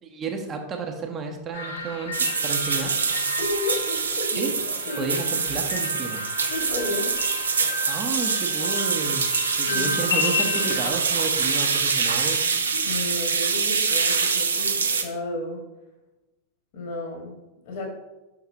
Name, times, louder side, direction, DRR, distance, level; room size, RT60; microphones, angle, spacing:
voice 1, 0.0-2.9 4.4-4.5 5.0-6.2 7.9-12.4, right 4 dB, 25° right, 2 dB, 0.8 m, -31 dB
sound 1, 1.5-10.9, left 4 dB, 65° left, 0.7 m, -33 dB
sound 2, 2.1-15.0, right 5 dB, 70° right, 0.6 m, -25 dB
voice 2, 3.4-4.6 4.9-5.1 6.5-7.2 9.6-10.3 12.8-15.6 16.7-17.4 17.7-17.9, left 2 dB, 50° left, 0 dB, 1.8 m, -32 dB
6.0 x 5.6 x 2.8 m, 1.0 s
figure-of-eight pair, 90°, 0 cm